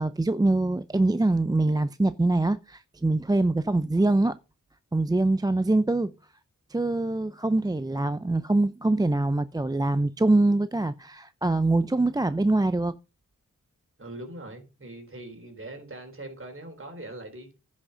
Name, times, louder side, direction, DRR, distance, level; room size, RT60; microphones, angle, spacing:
voice 1, 0.0-4.4 4.9-6.1 6.7-13.0, right 2 dB, 15° right, 0.5 m, -24 dB
voice 2, 14.0-17.6, right 1 dB, 40° right, 4.0 m, -41 dB
10.5 x 6.3 x 5.5 m
cardioid pair, 60°, 31 cm